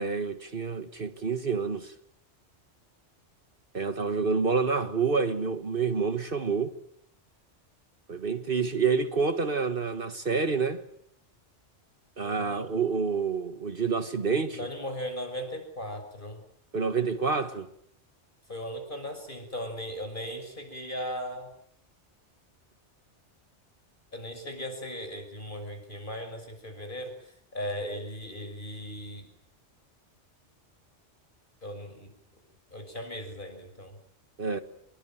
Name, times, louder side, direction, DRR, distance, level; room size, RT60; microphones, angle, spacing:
voice 1, 0.0-1.9 3.7-6.7 8.1-10.8 12.2-14.6 16.7-17.7 34.4-34.6, right 5 dB, 50° right, 1.6 m, -28 dB
voice 2, 12.2-12.8 14.5-16.4 18.5-21.5 24.1-29.3 31.6-32.1 32.7-34.0, equal, 45° left, 6.4 m, -37 dB
26.5 x 22.5 x 9.0 m
omnidirectional pair, 1.2 m